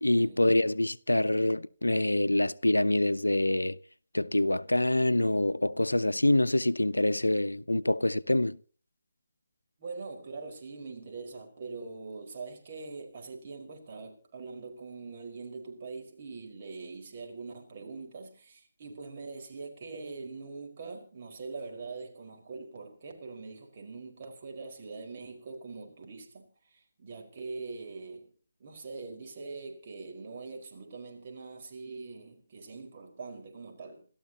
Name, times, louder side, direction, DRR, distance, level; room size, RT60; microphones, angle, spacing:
voice 1, 0.0-3.8 4.1-8.6, left 1 dB, 85° left, 0.6 m, -26 dB
voice 2, 9.8-28.3 28.6-34.1, right 4 dB, 40° right, 4.9 m, -43 dB
28.0 x 13.0 x 2.9 m
figure-of-eight pair, 150°, 0 cm